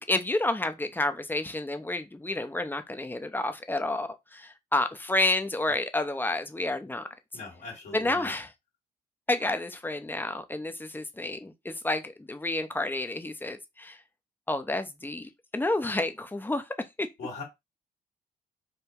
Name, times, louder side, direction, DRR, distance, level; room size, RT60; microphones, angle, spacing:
voice 1, 0.0-7.1 7.9-8.5 9.3-14.0 14.5-16.7 17.0-17.1, left 2 dB, 10° left, 0.6 m, -30 dB
voice 2, 7.3-8.3 17.2-17.4, left 3 dB, 70° left, 1.5 m, -40 dB
3.7 x 2.2 x 2.8 m
hypercardioid pair, 55°, 18 cm